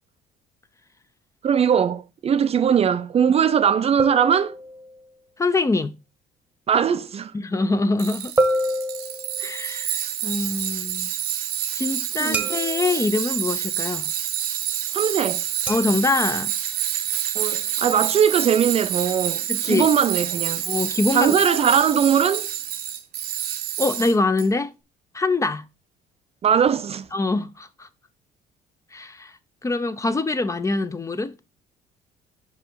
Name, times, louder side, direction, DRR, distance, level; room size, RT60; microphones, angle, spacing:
voice 1, 1.4-4.6 6.7-7.3 12.2-12.5 14.9-15.4 17.3-20.6 21.1-22.5 26.4-27.1, right 8 dB, 35° right, 0.5 m, -20 dB
sound 1, 4.0-5.1 8.4-9.8 12.3-13.1 15.7-16.0, right 1 dB, 10° right, 1.0 m, -27 dB
voice 2, 5.4-6.0 7.3-8.3 9.4-11.1 11.7-14.1 15.7-16.5 19.5-19.9 20.7-21.4 23.8-24.7 25.1-25.6 27.1-27.9 28.9-29.3 29.6-31.3, left 3 dB, 20° left, 0.5 m, -24 dB
Tools, 8.0-24.5, right 11 dB, 70° right, 0.9 m, -28 dB
5.5 x 5.1 x 4.5 m
cardioid pair, 110°, 17 cm